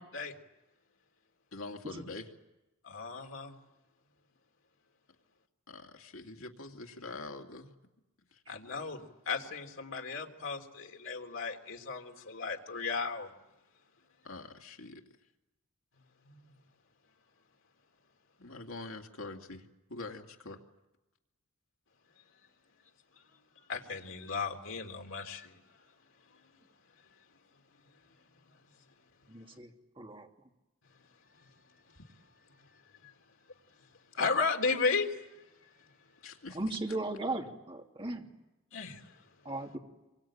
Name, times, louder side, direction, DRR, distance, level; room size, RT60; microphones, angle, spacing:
voice 1, 1.5-2.3 5.7-7.7 8.3-8.4 14.2-15.0 18.4-20.6 36.2-36.6 36.9-37.0, left 3 dB, 85° left, 2 dB, 2.6 m, -45 dB
voice 2, 2.8-3.6 8.5-13.3 16.2-16.5 23.6-25.6 33.0-33.1 34.1-35.3 38.7-39.2, left 4 dB, 65° left, 3 dB, 3.3 m, -35 dB
voice 3, 29.3-29.7 30.0-30.3 36.5-38.2 39.4-39.8, right 2 dB, 25° right, 1 dB, 3.0 m, -36 dB
27.5 x 24.0 x 8.8 m, 0.99 s
head